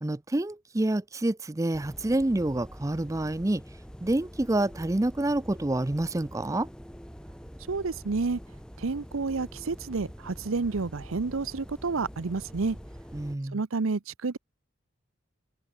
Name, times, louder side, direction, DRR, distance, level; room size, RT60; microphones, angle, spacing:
voice 1, 0.0-3.6 4.0-6.7 13.1-13.6, right 1 dB, 15° right, 0.4 m, -28 dB
sound 1, 1.7-13.4, equal, 5° left, 5.2 m, -45 dB
voice 2, 7.7-8.4 8.8-12.8 13.5-14.4, right 4 dB, 75° right, 0.7 m, -30 dB
head